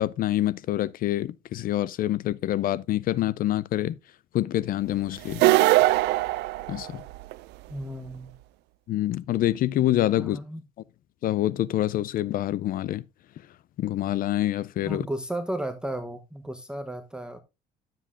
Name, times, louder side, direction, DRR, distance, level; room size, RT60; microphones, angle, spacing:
voice 1, 0.0-4.0 4.3-5.4 6.7-7.0 8.9-10.4 11.2-13.0 13.8-15.1, left 13 dB, 55° left, 0.4 m, -26 dB
sound 1, 5.3-7.3, right 17 dB, 85° right, 0.4 m, -21 dB
voice 2, 7.7-8.3 10.2-10.6 14.8-17.4, right 1 dB, 5° right, 0.8 m, -34 dB
12.0 x 7.6 x 2.4 m
cardioid pair, 110°, 17 cm